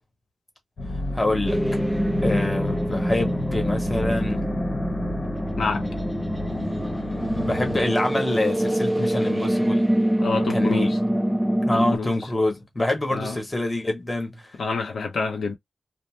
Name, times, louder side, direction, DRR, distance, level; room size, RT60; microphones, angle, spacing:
sound 1, 0.8-7.9, left 2 dB, 55° left, 0.9 m, -30 dB
voice 1, 1.1-1.6 2.2-4.5 7.4-9.9 10.5-10.9 11.7-14.5, left 2 dB, 15° left, 0.8 m, -26 dB
sound 2, 1.5-12.0, equal, 5° right, 0.3 m, -25 dB
voice 2, 10.2-11.0 11.7-12.1 13.1-13.4 14.6-15.6, left 4 dB, 90° left, 0.6 m, -27 dB
2.7 x 2.1 x 3.1 m
wide cardioid pair, 170°, 0 cm